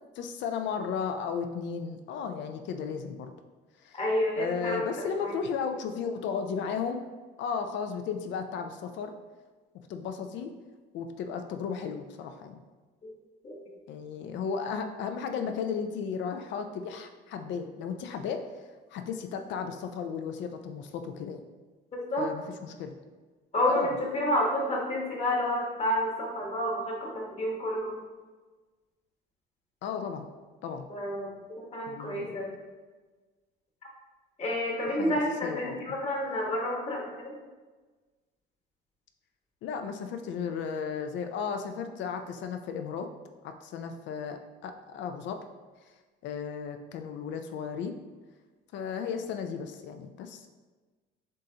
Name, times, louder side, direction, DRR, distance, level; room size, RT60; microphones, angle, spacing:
voice 1, 0.2-3.3 3.8-4.0 4.4-7.0 7.4-9.1 9.9-10.5 10.9-12.6 13.9-18.4 18.9-21.4 22.2-23.0 23.7-24.0 29.8-30.3 30.6-30.8 31.9-32.4 35.0-35.1 35.4-35.8 39.6-43.1 43.4-45.4 46.2-47.9 48.7-50.5, left 6 dB, 75° left, 7 dB, 0.5 m, -34 dB
voice 2, 3.9-5.4 13.0-13.1 13.4-13.6 21.9-22.3 23.5-28.0 30.9-32.5 34.4-37.3, left 1 dB, 35° left, -2 dB, 1.2 m, -30 dB
7.3 x 2.6 x 2.8 m, 1.3 s
cardioid pair, 130°, 19 cm